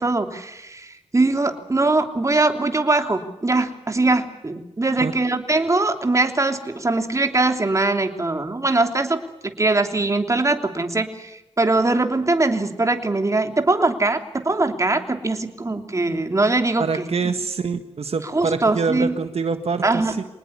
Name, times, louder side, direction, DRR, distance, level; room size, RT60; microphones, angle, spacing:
voice 1, 0.0-17.1 18.3-19.2 19.8-20.2, right 2 dB, 30° right, 5 dB, 3.1 m, -21 dB
voice 2, 16.8-20.2, right 5 dB, 70° right, 7 dB, 1.6 m, -25 dB
25.5 x 19.5 x 8.3 m, 0.93 s
wide cardioid pair, 95°, 11 cm